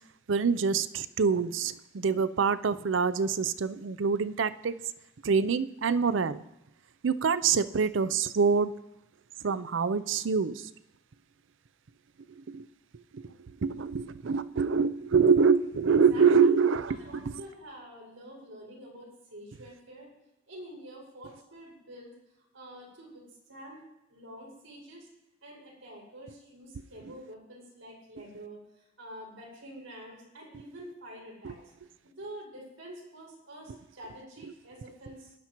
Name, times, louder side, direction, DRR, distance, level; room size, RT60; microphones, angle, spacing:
voice 1, 0.3-4.7 5.2-6.4 7.0-8.7 9.4-10.6 12.5-12.6 13.6-17.0, right 5 dB, 70° right, 15 dB, 0.5 m, -25 dB
voice 2, 15.9-16.5 16.9-20.1 20.5-22.1 22.5-23.8 24.1-25.1 25.4-31.6 32.0-35.3, right 1 dB, 90° right, -2 dB, 5.9 m, -47 dB
21.5 x 11.0 x 3.0 m, 0.92 s
head